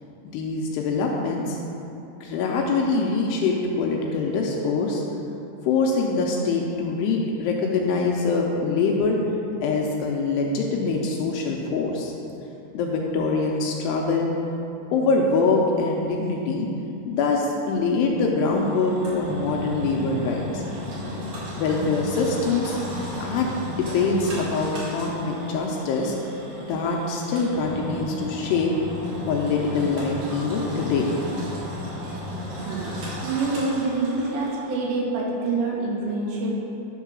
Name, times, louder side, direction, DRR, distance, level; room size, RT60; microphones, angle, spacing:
voice 1, 0.3-1.6 2.2-5.0 5.6-9.2 9.6-12.1 12.7-14.3 14.9-16.7 17.1-20.6 21.6-22.8 23.2-23.5 23.8-26.2 26.7-28.7 29.2-31.1, left 4 dB, 80° left, 0 dB, 2.6 m, -24 dB
Engine, 18.5-34.6, equal, 55° right, 3.2 m, -34 dB
voice 2, 32.6-36.5, right 3 dB, 75° right, -4 dB, 3.5 m, -26 dB
11.0 x 3.7 x 6.1 m, 2.9 s
omnidirectional pair, 5.2 m